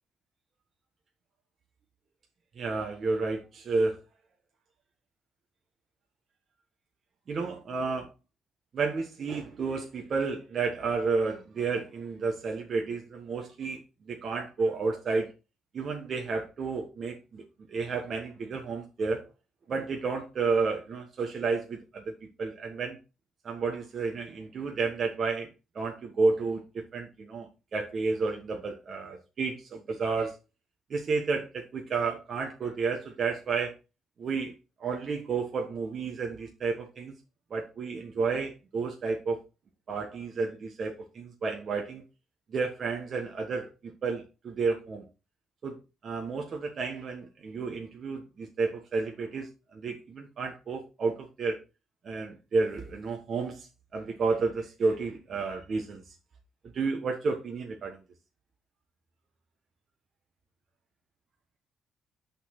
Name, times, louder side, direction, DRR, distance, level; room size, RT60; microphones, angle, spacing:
voice 1, 2.6-4.0 7.3-8.1 8.7-13.8 14.1-15.3 15.7-17.4 17.7-19.2 19.7-22.0 22.4-23.0 23.4-25.5 25.7-30.3 30.9-33.7 34.2-34.5 34.8-37.1 37.5-39.4 39.9-42.0 42.5-45.0 45.6-45.8 46.0-51.6 52.0-56.0 56.7-58.0, right 4 dB, 50° right, 1.3 m, -31 dB
6.1 x 4.3 x 5.9 m
cardioid pair, 90°, 0 cm